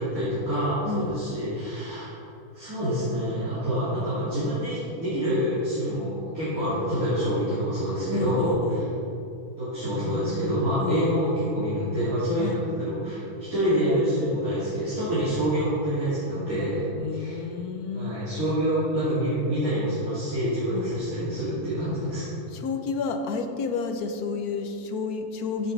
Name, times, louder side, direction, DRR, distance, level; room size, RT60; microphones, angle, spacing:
voice 1, 0.0-2.1 2.5-8.8 9.5-16.8 17.1-17.4 17.9-22.3, equal, 60° right, -13 dB, 3.4 m, -26 dB
voice 2, 0.8-1.2 8.1-8.9 10.8-11.0 12.4-12.6 17.0-18.2 20.7-20.9 22.5-25.7, left 4 dB, 75° left, 6 dB, 1.4 m, -30 dB
15.0 x 7.2 x 4.0 m, 2.7 s
omnidirectional pair, 1.7 m